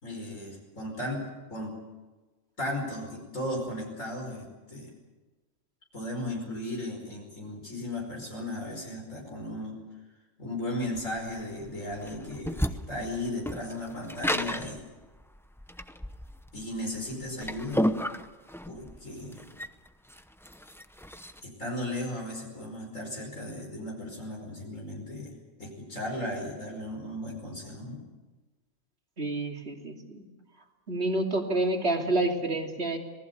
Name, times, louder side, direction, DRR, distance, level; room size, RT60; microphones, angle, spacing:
voice 1, 0.0-1.8 2.6-4.9 5.9-9.8 10.4-14.8 16.5-17.9 18.7-19.5 21.4-28.0, left 1 dB, 85° left, 0 dB, 5.5 m, -36 dB
sound 1, 11.0-21.4, equal, 5° left, 0.6 m, -33 dB
voice 2, 29.2-30.2 30.9-33.0, right 2 dB, 55° right, 2 dB, 3.0 m, -28 dB
26.5 x 19.0 x 6.9 m, 1.2 s
omnidirectional pair, 1.3 m